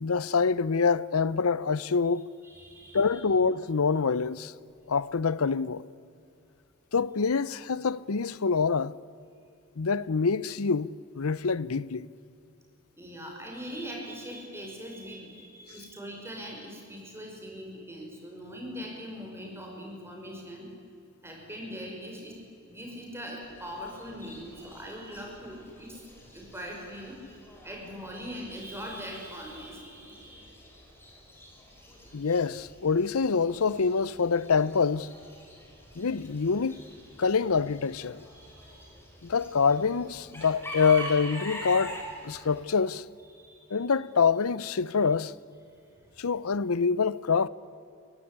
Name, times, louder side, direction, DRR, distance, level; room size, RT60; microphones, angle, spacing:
voice 1, 0.0-2.3 2.9-4.5 4.9-5.8 6.9-8.9 9.8-10.9 11.2-12.1 32.1-35.1 36.0-36.8 37.2-38.2 39.2-43.0 43.7-45.3 46.2-47.5, left 5 dB, 85° left, 0.7 m, -26 dB
voice 2, 2.4-3.2 13.0-20.7 21.2-26.0 26.3-30.6 37.2-37.3 38.3-38.9 43.3-43.9, equal, 10° right, 6.0 m, -41 dB
Chicken rooster / Bird, 23.4-42.6, equal, 10° left, 5.3 m, -45 dB
23.5 x 17.5 x 10.0 m
head